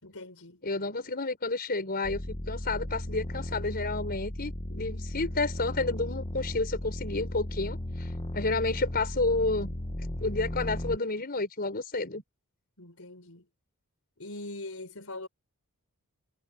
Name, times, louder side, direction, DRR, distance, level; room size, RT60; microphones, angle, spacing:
voice 1, 0.0-0.6 12.8-13.5 14.2-15.3, left 2 dB, 70° left, 6.1 m, -42 dB
voice 2, 0.6-9.7 10.2-12.2, left 3 dB, 45° left, 4.9 m, -30 dB
sound 1, 2.0-11.0, left 1 dB, 25° left, 1.2 m, -36 dB
head